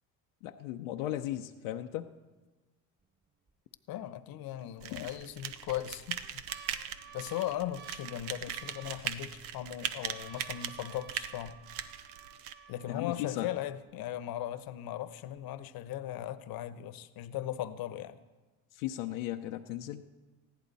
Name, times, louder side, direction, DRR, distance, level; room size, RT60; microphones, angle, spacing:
voice 1, 0.4-2.1 4.9-5.1 12.9-13.5 18.7-20.0, left 13 dB, 90° left, 4 dB, 0.8 m, -36 dB
sound 1, 3.0-3.5 4.0-4.1 5.0-5.5 6.0-13.9 14.6-14.7 14.9-15.4 15.9-16.0, right 8 dB, 25° right, 1.5 m, -54 dB
voice 2, 3.9-6.4 7.1-11.6 12.7-18.2, left 12 dB, 65° left, 14 dB, 1.0 m, -38 dB
sound 2, 4.8-12.5, right 9 dB, 90° right, 1.0 m, -40 dB
20.0 x 15.0 x 4.2 m, 1.2 s
supercardioid pair, 70°, 38 cm